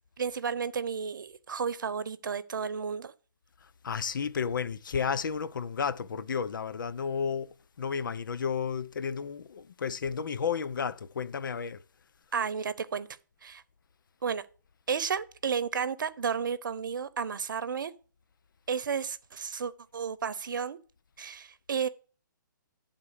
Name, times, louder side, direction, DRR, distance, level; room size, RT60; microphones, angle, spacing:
voice 1, 0.2-3.1 12.3-13.1 13.4-13.6 14.2-14.4 14.9-17.9 18.7-20.8 21.2-21.9, right 6 dB, 70° right, 0.8 m, -32 dB
voice 2, 3.8-11.8, left 6 dB, 70° left, 0.5 m, -32 dB
9.6 x 3.7 x 6.5 m
hypercardioid pair, 155°, 11 cm